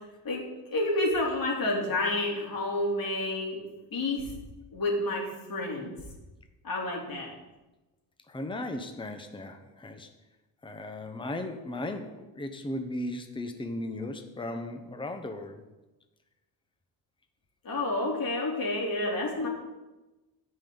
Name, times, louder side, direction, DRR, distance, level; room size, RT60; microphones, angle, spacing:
voice 1, 0.7-3.6 3.9-4.3 4.7-5.9 6.6-7.3 17.6-19.5, left 2 dB, 50° left, -2 dB, 3.3 m, -29 dB
voice 2, 8.3-10.1 10.6-15.6, left 1 dB, 10° left, 6 dB, 0.9 m, -36 dB
16.0 x 5.5 x 3.9 m, 1.1 s
cardioid pair, 95°, 44 cm